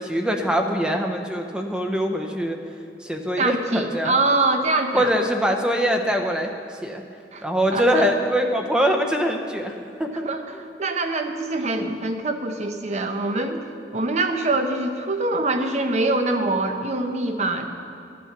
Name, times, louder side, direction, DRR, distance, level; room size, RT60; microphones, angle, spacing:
voice 1, 0.0-2.6 3.0-4.1 4.9-7.0 7.4-10.2, equal, 5° right, 3 dB, 0.7 m, -23 dB
voice 2, 3.4-5.1 7.3-7.4 7.7-8.1 10.2-13.6 13.9-17.7, right 2 dB, 40° right, 6 dB, 0.8 m, -24 dB
13.0 x 8.4 x 5.9 m, 2.5 s
head